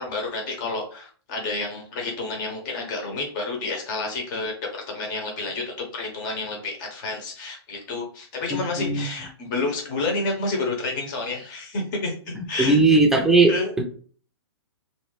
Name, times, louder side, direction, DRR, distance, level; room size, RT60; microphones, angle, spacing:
voice 1, 0.0-12.8 13.5-13.7, left 3 dB, 45° left, 1 dB, 1.2 m, -30 dB
voice 2, 8.5-9.1 12.6-13.8, right 3 dB, 5° right, 2 dB, 0.6 m, -18 dB
2.9 x 2.8 x 3.1 m, 0.43 s
hypercardioid pair, 125°, 14 cm